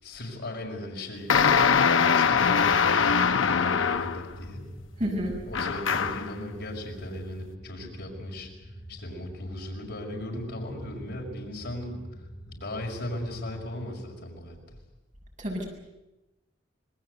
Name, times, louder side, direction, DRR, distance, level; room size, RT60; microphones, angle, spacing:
voice 1, 0.0-4.7 5.5-8.5 8.9-12.0 12.5-14.6, left 1 dB, 60° left, -1 dB, 5.9 m, -37 dB
sound 1, 1.3-4.3 5.5-6.3, left 6 dB, 85° left, 0.8 m, -22 dB
sound 2, 2.2-14.0, equal, 20° left, 3.3 m, -45 dB
voice 2, 5.0-5.4 15.4-15.6, equal, 40° right, 0 dB, 7.2 m, -29 dB
26.5 x 20.5 x 8.1 m, 1.0 s
head